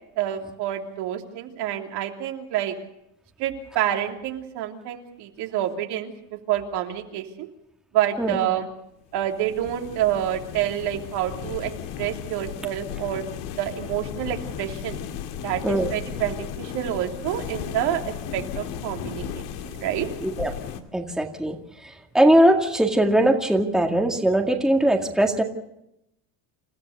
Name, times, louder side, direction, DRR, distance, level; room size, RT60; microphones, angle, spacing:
voice 1, 0.2-2.7 3.4-6.1 6.5-7.5 7.9-8.7 9.1-11.7 12.0-13.2 13.6-15.0 15.4-20.1, right 11 dB, 60° right, 3 dB, 3.1 m, -28 dB
sound 1, 9.1-20.8, left 9 dB, 75° left, 2.3 m, -35 dB
voice 2, 20.9-21.5 22.1-25.4, right 1 dB, ahead, 2 dB, 2.0 m, -20 dB
28.5 x 14.5 x 6.6 m, 0.83 s
cardioid pair, 135°, 43 cm